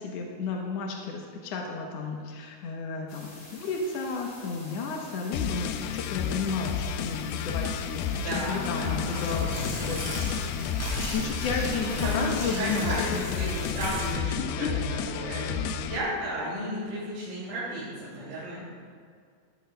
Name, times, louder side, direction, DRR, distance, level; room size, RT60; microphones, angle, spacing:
voice 1, 0.0-8.0 8.3-9.6 9.8-13.2 14.4-14.7, left 4 dB, 75° left, 1 dB, 1.5 m, -33 dB
sound 1, 3.1-13.7, left 2 dB, 45° left, 4.1 m, -49 dB
sound 2, 5.3-16.0, left 8 dB, 90° left, 2.4 m, -31 dB
voice 2, 8.1-9.6 11.8-12.3 12.6-14.3 14.6-14.8 15.1-18.6, equal, 80° right, -9 dB, 4.4 m, -33 dB
Tearing, 9.0-14.2, left 1 dB, 10° left, 2.9 m, -36 dB
14.5 x 14.5 x 2.3 m, 2.1 s
omnidirectional pair, 4.1 m